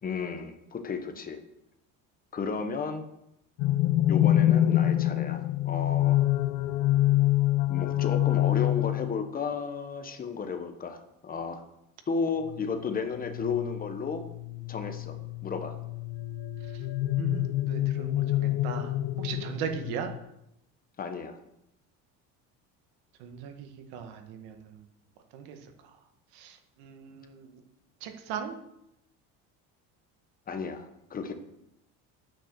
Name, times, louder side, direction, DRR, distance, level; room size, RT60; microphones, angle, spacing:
voice 1, 0.0-1.4 2.3-3.0 4.1-6.2 7.7-11.6 12.1-14.2 14.7-15.2 15.4-15.7 21.0-21.4 30.5-31.3, left 5 dB, 25° left, 7 dB, 1.1 m, -33 dB
sound 1, 3.6-9.2 12.4-20.2, left 14 dB, 75° left, 1.0 m, -27 dB
voice 2, 17.2-18.9 19.2-20.1 23.2-24.8 25.3-25.6 26.3-27.6 28.0-28.6, right 8 dB, 85° right, 6 dB, 1.9 m, -38 dB
9.9 x 9.1 x 6.6 m, 0.84 s
cardioid pair, 160°, 36 cm